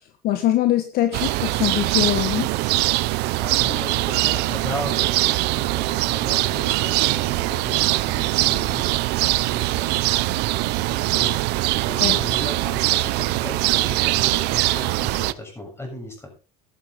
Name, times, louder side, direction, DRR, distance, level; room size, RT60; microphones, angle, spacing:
voice 1, 0.2-2.5 12.0-12.2, left 13 dB, 55° left, 7 dB, 1.7 m, -22 dB
sound 1, 1.1-15.3, right 19 dB, 65° right, 0.8 m, -22 dB
voice 2, 3.4-16.3, left 1 dB, 15° left, 1 dB, 6.9 m, -36 dB
14.0 x 11.5 x 3.9 m, 0.32 s
cardioid pair, 130°, 18 cm